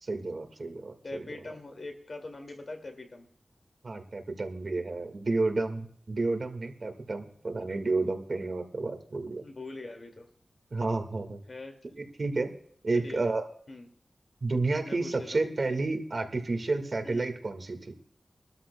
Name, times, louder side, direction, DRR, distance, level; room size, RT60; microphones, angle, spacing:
voice 1, 0.0-1.3 3.8-9.4 10.7-11.4 12.0-12.5 12.8-13.4 14.4-17.9, right 3 dB, 55° right, 5 dB, 1.7 m, -31 dB
voice 2, 1.0-3.3 9.4-10.3 11.5-11.7 12.9-13.2 13.7-13.9 14.9-15.5 17.0-17.3, left 2 dB, 55° left, 5 dB, 2.1 m, -42 dB
22.5 x 13.0 x 2.2 m, 0.63 s
wide cardioid pair, 105°, 0 cm